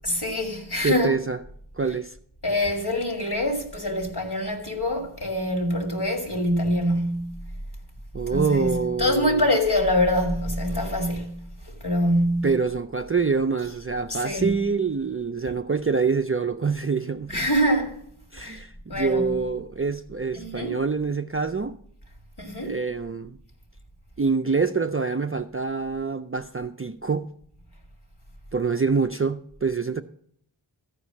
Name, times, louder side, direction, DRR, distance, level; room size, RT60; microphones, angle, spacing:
voice 1, 0.0-1.2 2.4-7.4 8.3-11.4 11.8-12.5 14.1-14.6 17.3-17.9 18.4-18.6 18.9-19.4 20.3-20.7 22.4-22.8, left 1 dB, 50° left, 2.7 m, -25 dB
voice 2, 0.8-1.4 1.8-2.2 8.1-9.4 12.4-17.5 18.3-21.8 22.6-23.4 24.2-27.2 28.5-30.0, right 5 dB, 30° right, 0.5 m, -26 dB
14.0 x 4.9 x 7.0 m
wide cardioid pair, 45°, 50 cm